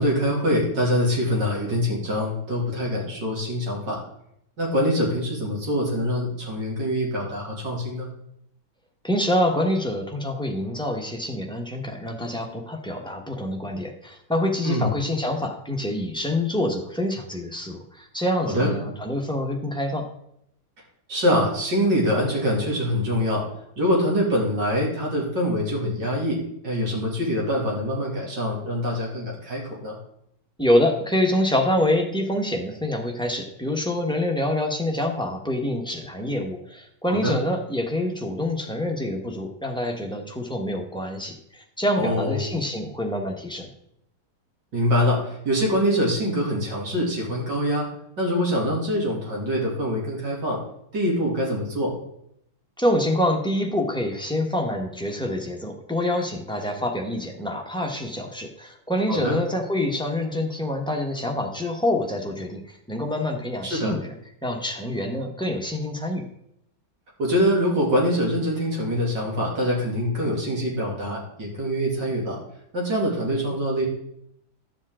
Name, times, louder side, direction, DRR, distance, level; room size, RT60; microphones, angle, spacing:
voice 1, 0.0-4.0 4.6-8.1 14.6-14.9 18.4-18.7 21.1-23.4 23.8-30.0 37.1-37.4 41.9-42.5 44.7-47.9 48.2-50.6 50.9-51.9 59.1-59.3 63.6-63.9 67.2-72.4 72.7-73.9, equal, 80° right, -3 dB, 3.4 m, -24 dB
voice 2, 9.0-20.0 30.6-43.7 52.8-62.6 62.9-64.1 64.4-66.2, left 1 dB, 5° left, 1 dB, 1.0 m, -26 dB
11.5 x 7.3 x 3.7 m, 0.74 s
omnidirectional pair, 1.9 m